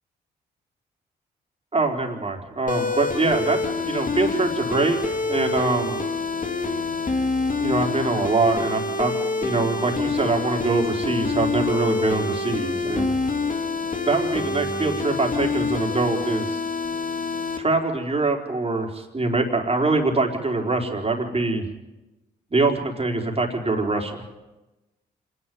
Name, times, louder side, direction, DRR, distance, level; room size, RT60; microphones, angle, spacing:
voice 1, 1.7-5.0 5.2-6.0 7.6-9.1 9.4-13.1 14.1-16.6 17.6-21.7 22.5-24.2, right 3 dB, 30° right, 2 dB, 4.4 m, -24 dB
sound 1, 2.7-17.6, left 3 dB, 40° left, 2.5 m, -26 dB
26.5 x 11.0 x 9.5 m, 1.1 s
supercardioid pair, 45°, 20 cm